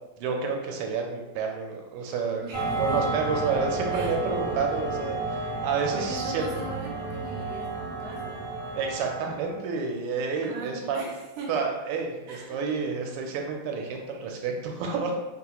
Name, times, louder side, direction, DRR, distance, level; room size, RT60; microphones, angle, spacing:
voice 1, 0.2-2.4 2.8-6.5 8.7-11.0 11.5-15.2, right 5 dB, 85° right, 2 dB, 1.5 m, -30 dB
voice 2, 2.4-3.1 3.9-4.2 5.9-8.5 10.4-11.5 12.3-12.6, right 2 dB, 65° right, -3 dB, 1.0 m, -39 dB
sound 1, 2.5-9.6, right 3 dB, 5° left, 0.7 m, -31 dB
3.6 x 2.8 x 2.3 m, 1.1 s
omnidirectional pair, 2.4 m